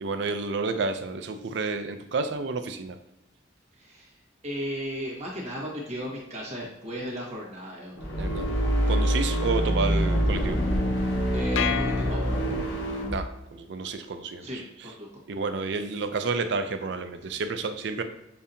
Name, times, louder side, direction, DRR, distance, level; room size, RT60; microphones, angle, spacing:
voice 1, 0.0-3.0 8.2-8.5 8.9-10.6 13.1-14.5 15.3-18.0, right 4 dB, 65° right, 9 dB, 0.4 m, -30 dB
voice 2, 3.7-4.2 4.4-8.1 11.3-12.3 14.4-15.2, equal, 35° right, -4 dB, 1.5 m, -35 dB
sound 1, 8.0-13.2, equal, 70° left, 0.8 m, -25 dB
sound 2, 11.6-12.9, left 8 dB, 90° left, 0.4 m, -31 dB
6.9 x 2.8 x 2.7 m, 0.88 s
head